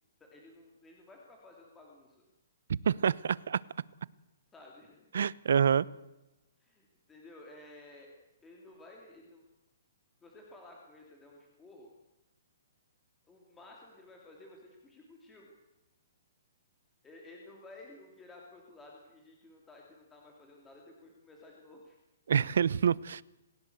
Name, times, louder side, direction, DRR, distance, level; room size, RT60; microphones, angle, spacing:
voice 1, 0.2-2.3 4.5-5.2 6.6-8.2 8.4-9.4 10.2-11.9 13.3-15.5 17.0-22.0, left 2 dB, 10° left, 2.7 m, -54 dB
voice 2, 2.7-3.6 5.1-5.9 22.3-23.2, right 7 dB, 70° right, 0.8 m, -27 dB
26.5 x 16.5 x 7.9 m
hypercardioid pair, 175°, 0 cm